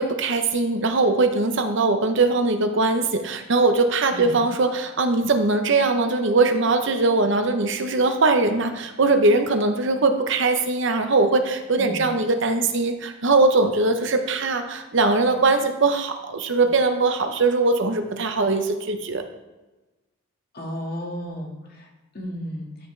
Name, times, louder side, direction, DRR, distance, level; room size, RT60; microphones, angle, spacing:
voice 1, 0.0-19.2, right 3 dB, 65° right, 6 dB, 0.9 m, -21 dB
voice 2, 20.5-21.9 22.1-22.7, equal, 50° left, -1 dB, 2.0 m, -33 dB
12.5 x 5.7 x 3.3 m, 1.1 s
head